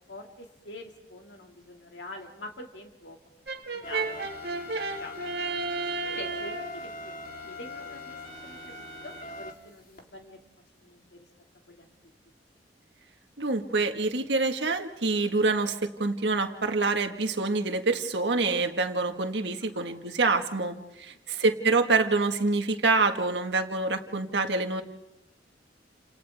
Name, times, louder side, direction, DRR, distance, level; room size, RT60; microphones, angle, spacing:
voice 1, 0.1-3.2 3.7-4.6 5.0-5.4 6.0-10.4 10.8-11.3 11.7-11.9 19.7-19.8 21.3-21.5, left 2 dB, 85° left, 2 dB, 2.3 m, -45 dB
Brass instrument, 3.5-6.8, right 3 dB, 65° right, 1.8 m, -32 dB
sound 1, 3.8-10.0, left 1 dB, 55° left, 3.5 m, -42 dB
voice 2, 13.4-24.8, right 3 dB, 80° right, 6 dB, 1.6 m, -26 dB
29.5 x 27.5 x 3.5 m, 0.91 s
head